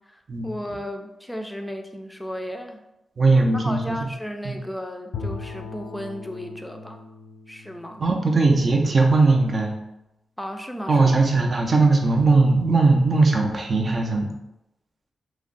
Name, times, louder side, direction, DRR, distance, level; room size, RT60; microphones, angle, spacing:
voice 1, 0.1-2.8 3.5-7.1 7.5-8.0 10.4-11.2, equal, 5° left, 4 dB, 0.4 m, -34 dB
voice 2, 3.2-3.9 4.4-4.6 8.0-9.7 10.9-14.3, right 3 dB, 50° right, 2 dB, 0.5 m, -19 dB
Bowed string instrument, 5.1-9.4, left 4 dB, 80° left, 0.3 m, -38 dB
2.4 x 2.0 x 3.8 m, 0.91 s
cardioid pair, 55°, 0 cm